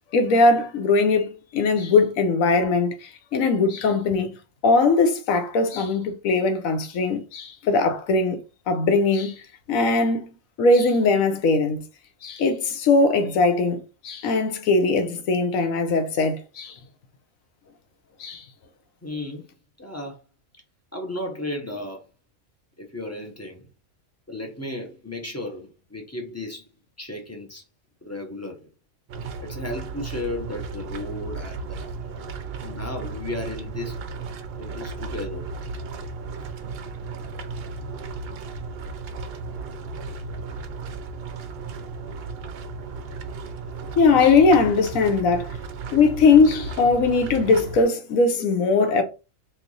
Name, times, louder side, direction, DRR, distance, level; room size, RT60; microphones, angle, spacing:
voice 1, 0.1-4.3 4.6-9.4 9.7-10.3 10.6-11.8 12.2-16.7 18.2-18.4 44.0-45.5 45.9-49.0, left 3 dB, 75° left, 1.1 m, -20 dB
voice 2, 19.0-19.5 19.8-20.2 20.9-22.0 22.8-23.7 24.3-26.7 27.0-27.6 28.0-28.7 29.4-31.9 32.6-34.1 34.6-35.5, left 1 dB, 15° left, 0.5 m, -34 dB
sound 1, 29.1-47.8, right 4 dB, 65° right, 0.6 m, -35 dB
3.1 x 2.5 x 3.8 m
omnidirectional pair, 1.5 m